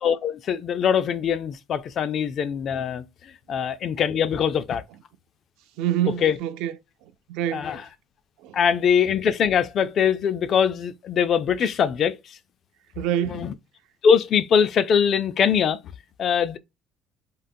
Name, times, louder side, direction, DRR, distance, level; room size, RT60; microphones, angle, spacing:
voice 1, 0.0-4.8 6.1-6.4 7.5-7.8 8.5-12.4 13.3-13.5 14.0-15.8 16.2-16.6, left 7 dB, 35° left, 0.3 m, -22 dB
voice 2, 5.8-6.8 7.0-7.8 8.4-8.6 13.0-13.4, right 11 dB, 85° right, 0.4 m, -27 dB
3.7 x 2.0 x 2.5 m
cardioid pair, 175°, 0 cm